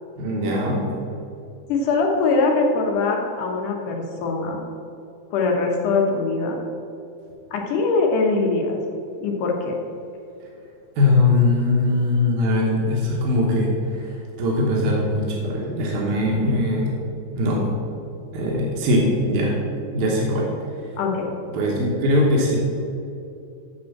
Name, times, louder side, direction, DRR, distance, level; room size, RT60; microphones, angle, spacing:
voice 1, 0.2-0.8 11.0-16.9 17.4-17.6 18.3-19.6 19.9-20.5 21.5-22.6, left 1 dB, 75° right, -2 dB, 2.7 m, -21 dB
voice 2, 1.7-4.6 5.3-6.6 7.5-8.8 9.2-9.7 21.0-21.3, left 3 dB, 85° left, 1 dB, 2.7 m, -22 dB
8.4 x 5.3 x 7.2 m, 2.7 s
omnidirectional pair, 3.5 m